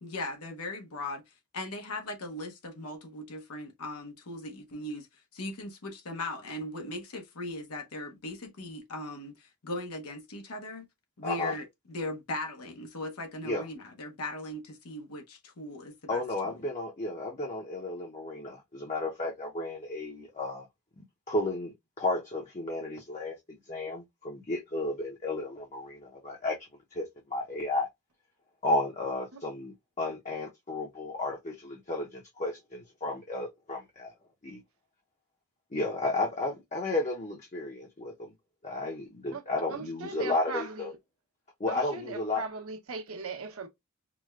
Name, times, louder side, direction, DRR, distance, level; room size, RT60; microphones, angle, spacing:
voice 1, 0.0-5.1 5.3-10.9 11.2-16.6, left 1 dB, 80° left, 0.9 m, -39 dB
voice 2, 11.2-11.5 13.4-13.6 16.1-20.7 21.0-26.6 26.9-27.9 28.6-34.1 34.5-34.6 35.7-38.3 38.6-40.9 41.6-42.4, left 2 dB, 35° left, 0.7 m, -33 dB
voice 3, 39.7-41.0 41.7-43.7, right 4 dB, 70° right, 0.9 m, -39 dB
4.9 x 2.2 x 2.3 m
head